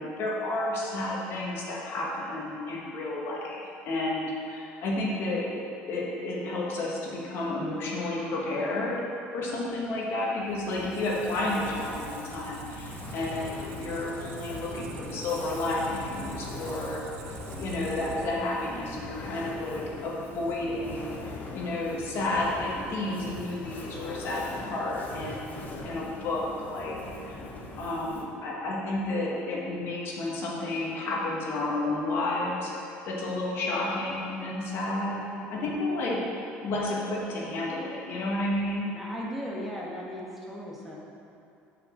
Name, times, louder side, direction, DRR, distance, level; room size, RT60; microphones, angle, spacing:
voice 1, 0.0-9.0 9.3-17.0 17.5-26.9 27.2-27.4 27.8-32.7 33.0-36.2 36.6-38.9, left 2 dB, 55° left, -4 dB, 1.5 m, -31 dB
Fire, 10.5-28.4, left 2 dB, 40° left, 0.9 m, -42 dB
Squeak, 10.7-18.6, right 5 dB, 75° right, 0.7 m, -44 dB
voice 2, 38.9-41.0, equal, 5° right, -5 dB, 1.3 m, -37 dB
5.7 x 4.9 x 6.4 m, 2.6 s
cardioid pair, 115°, 5 cm